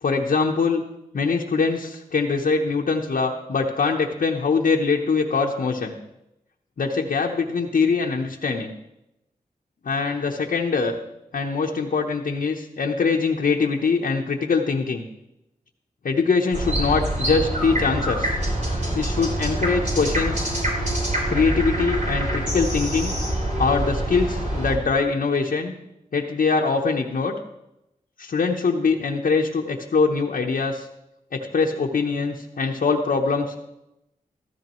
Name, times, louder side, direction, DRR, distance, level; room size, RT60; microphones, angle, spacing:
voice 1, 0.0-0.8 1.1-5.9 6.8-8.7 9.8-11.0 11.3-15.0 16.0-18.4 18.9-20.5 21.3-23.2 23.6-25.7 26.1-27.4 28.2-30.9 31.3-33.6, left 4 dB, 70° left, -1 dB, 1.0 m, -23 dB
sound 1, 16.5-24.8, right 1 dB, 55° right, 4.9 m, -25 dB
14.0 x 13.5 x 3.1 m, 0.89 s
cardioid pair, 50°, 15 cm